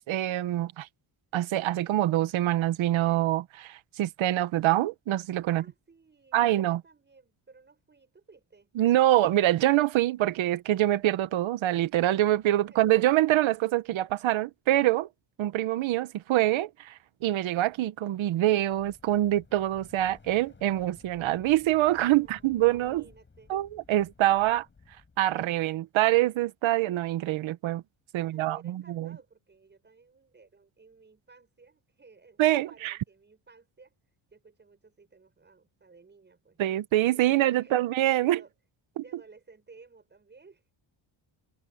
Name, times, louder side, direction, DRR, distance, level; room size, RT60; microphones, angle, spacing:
voice 1, 0.1-0.9 1.3-5.6 6.3-6.8 8.8-15.1 15.4-23.0 23.5-24.6 25.2-27.8 28.1-29.1 32.4-32.9 36.6-38.4 39.0-39.1, right 14 dB, 90° right, 1.3 m, -25 dB
voice 2, 5.5-8.7 12.7-12.8 22.0-23.5 28.2-34.0 34.3-36.6 37.1-37.9 38.2-38.5 39.0-40.7, right 4 dB, 25° right, 7.2 m, -56 dB
sound 1, 18.5-25.4, left 4 dB, 25° left, 7.9 m, -56 dB
cardioid pair, 150°, 46 cm